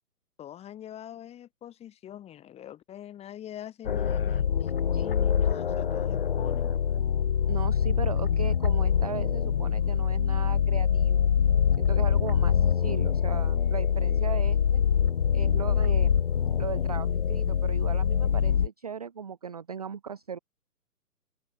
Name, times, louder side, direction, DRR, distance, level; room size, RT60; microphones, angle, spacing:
voice 1, 0.4-6.8, left 11 dB, 15° left, 4.2 m, -44 dB
sound 1, 3.8-18.7, left 8 dB, 35° left, 0.6 m, -25 dB
voice 2, 7.5-11.2 11.8-14.8 15.3-16.3 16.6-20.4, right 7 dB, 25° right, 0.6 m, -37 dB
open air
figure-of-eight pair, 135°, 48 cm